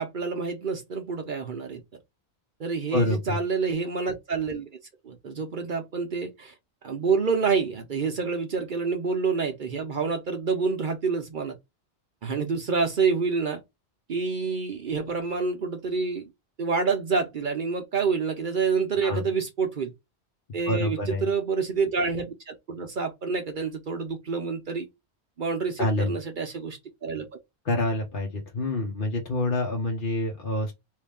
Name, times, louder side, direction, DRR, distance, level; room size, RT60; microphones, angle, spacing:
voice 1, 0.0-1.8 2.6-4.7 5.0-6.5 6.8-11.6 12.2-13.6 14.1-16.3 16.6-19.9 20.5-24.9 25.4-27.3, right 5 dB, 50° right, 0.8 m, -28 dB
voice 2, 2.9-3.4 19.0-19.3 20.7-21.3 25.8-26.1 27.6-30.7, left 2 dB, 50° left, 1.0 m, -27 dB
3.2 x 2.7 x 3.4 m
omnidirectional pair, 1.2 m